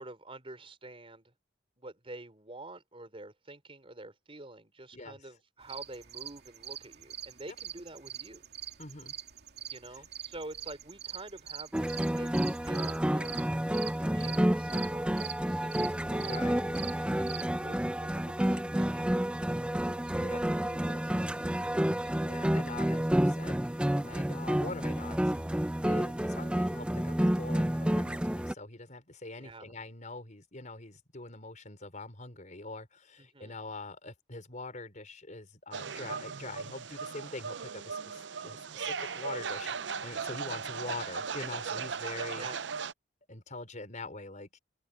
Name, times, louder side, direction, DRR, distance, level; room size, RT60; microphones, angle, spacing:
voice 1, 0.0-1.3 1.8-8.4 9.7-13.3 14.1-17.3 17.6-22.2 29.4-29.7 33.2-33.6 42.4-42.6, right 2 dB, 30° right, 4.2 m, -48 dB
crickets chirping (with other bugs), 5.6-17.5, right 9 dB, 65° right, 2.9 m, -44 dB
voice 2, 8.8-9.1 9.9-10.0 16.2-16.7 20.1-20.5 22.2-25.3 25.8-42.5 43.3-44.6, left 2 dB, 45° left, 5.4 m, -44 dB
sound 1, 11.7-28.5, equal, 5° right, 0.5 m, -30 dB
sound 2, 35.7-42.9, right 6 dB, 90° right, 0.7 m, -37 dB
open air
head